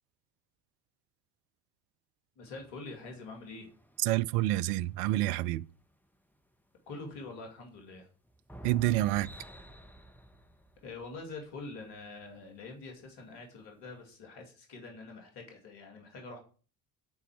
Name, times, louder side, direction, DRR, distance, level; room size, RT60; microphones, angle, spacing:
voice 1, 2.4-3.7 6.9-8.1 10.8-16.4, left 3 dB, 60° left, 2.4 m, -45 dB
sound 1, 2.4-6.2 6.6-6.7 7.0-7.5 8.2-11.6 12.4-12.5 13.0-13.1, right 1 dB, 5° left, 0.9 m, -52 dB
voice 2, 4.0-5.7 8.6-9.3, right 16 dB, 70° right, 0.5 m, -28 dB
9.4 x 4.2 x 7.3 m
hypercardioid pair, 60°, 49 cm